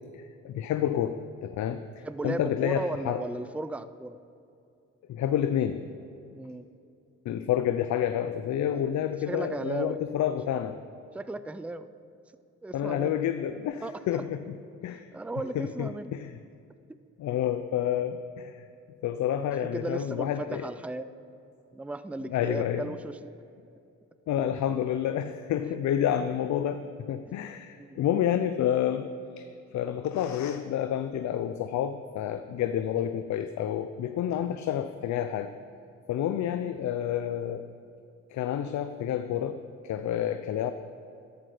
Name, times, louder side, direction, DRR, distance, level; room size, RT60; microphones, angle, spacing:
voice 1, 0.1-3.2 5.1-5.8 7.2-10.8 12.7-14.6 14.8-15.1 15.5-16.3 17.2-18.5 19.0-20.7 22.3-22.9 24.3-29.1 29.4-29.5 29.7-35.5 36.1-37.7 38.3-40.7, left 10 dB, 70° left, 9 dB, 0.6 m, -29 dB
voice 2, 2.0-4.2 6.3-6.7 8.7-8.8 9.3-10.0 11.1-11.9 12.6-13.2 13.8-14.2 14.9-16.1 16.9-17.0 19.6-21.1 21.7-23.3 27.3-27.4 27.8-28.0, right 2 dB, 5° right, 13 dB, 0.4 m, -36 dB
13.5 x 12.0 x 5.0 m, 2.6 s
cardioid pair, 90°, 30 cm